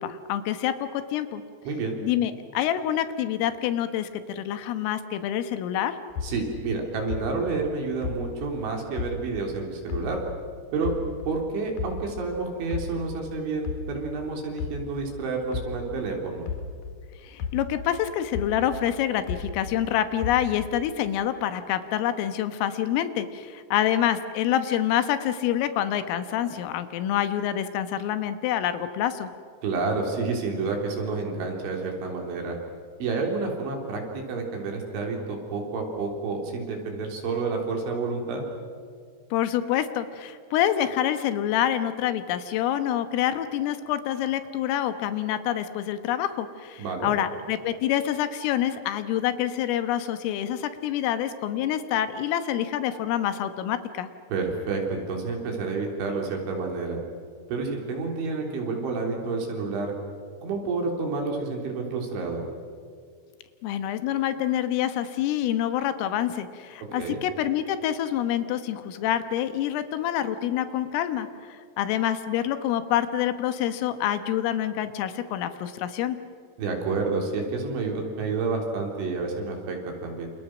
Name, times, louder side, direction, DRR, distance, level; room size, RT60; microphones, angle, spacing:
voice 1, 0.0-1.4 2.0-6.0 17.2-29.3 39.3-54.1 63.6-76.2, left 11 dB, 80° left, 10 dB, 3.8 m, -27 dB
voice 2, 1.7-2.0 6.2-10.2 10.7-10.9 11.3-16.5 29.6-32.6 33.0-38.5 46.8-47.1 54.3-57.0 57.5-59.9 60.4-62.4 66.9-67.2 76.6-80.3, right 4 dB, 65° right, 1 dB, 5.8 m, -29 dB
sound 1, 6.1-9.5 9.9-12.4 12.7-17.0 17.4-19.9 20.2-20.9, left 5 dB, 65° left, 2.3 m, -35 dB
28.5 x 28.5 x 6.2 m, 2.2 s
omnidirectional pair, 6.0 m